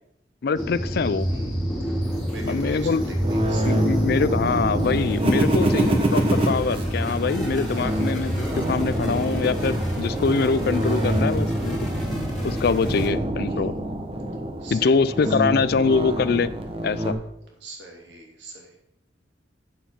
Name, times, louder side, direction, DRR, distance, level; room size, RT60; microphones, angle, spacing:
voice 1, 0.4-1.3 2.4-3.1 3.6-11.8 12.4-13.7 14.7-16.5 16.8-17.2, left 4 dB, 55° left, 16 dB, 0.4 m, -24 dB
sound 1, 0.5-13.1, equal, ahead, 2.5 m, -28 dB
voice 2, 1.2-1.6 2.2-3.0 3.3-3.6 7.7-8.4 10.8-11.1 13.5-13.6 14.6-15.5 17.6-18.8, right 2 dB, 70° right, 0 dB, 2.8 m, -42 dB
sound 2, 3.2-17.1, right 1 dB, 30° right, 1.2 m, -26 dB
9.1 x 7.2 x 5.8 m, 0.84 s
head